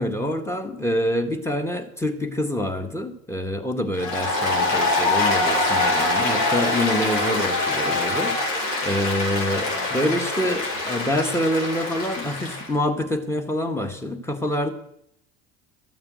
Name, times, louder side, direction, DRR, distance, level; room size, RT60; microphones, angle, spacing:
voice 1, 0.0-14.7, left 1 dB, 5° left, 7 dB, 1.9 m, -26 dB
Applause, 3.9-12.7, left 2 dB, 55° left, 4.0 m, -24 dB
13.5 x 7.2 x 6.4 m, 0.75 s
hypercardioid pair, 70°, 41 cm